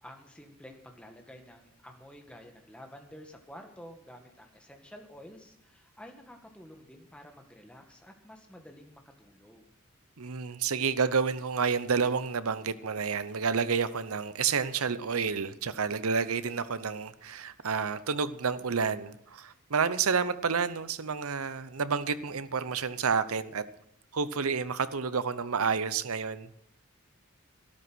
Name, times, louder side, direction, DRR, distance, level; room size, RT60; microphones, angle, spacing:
voice 1, 0.0-9.7, equal, 5° left, 3 dB, 1.8 m, -50 dB
voice 2, 10.2-23.6 24.1-26.5, right 5 dB, 85° right, 15 dB, 0.8 m, -30 dB
13.0 x 12.5 x 6.2 m, 0.72 s
head